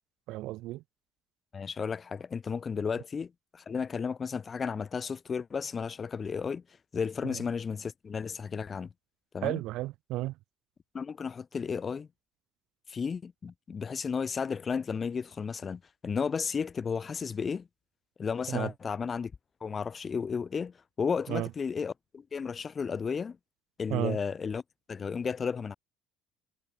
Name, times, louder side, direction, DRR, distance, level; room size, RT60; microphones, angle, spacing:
voice 1, 0.3-0.8 9.4-10.3 18.5-18.7 21.3-21.5 23.9-24.2, right 17 dB, 65° right, 0.9 m, -32 dB
voice 2, 1.5-6.6 6.9-8.9 9.3-9.6 10.9-12.1 12.9-17.7 18.2-19.3 19.6-23.4 23.8-24.6 24.9-25.8, left 6 dB, 25° left, 1.6 m, -33 dB
cardioid pair, 160°, 0 cm